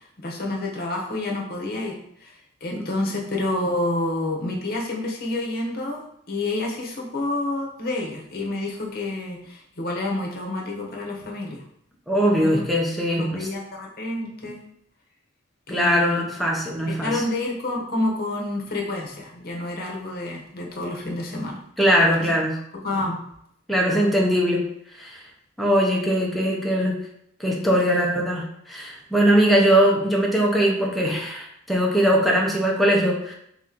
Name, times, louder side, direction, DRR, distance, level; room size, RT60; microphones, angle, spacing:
voice 1, 0.2-2.3 2.6-6.0 6.3-11.6 12.4-12.6 13.2-14.6 15.7-16.2 16.9-21.6 22.2-22.3 22.7-23.2 27.9-28.2, left 2 dB, 55° left, 0 dB, 0.9 m, -29 dB
voice 2, 12.1-13.5 15.7-17.2 21.8-22.6 23.7-24.7 25.0-25.2 25.6-26.9 27.4-33.3, equal, ahead, -3 dB, 0.7 m, -21 dB
3.6 x 3.0 x 3.8 m, 0.72 s
head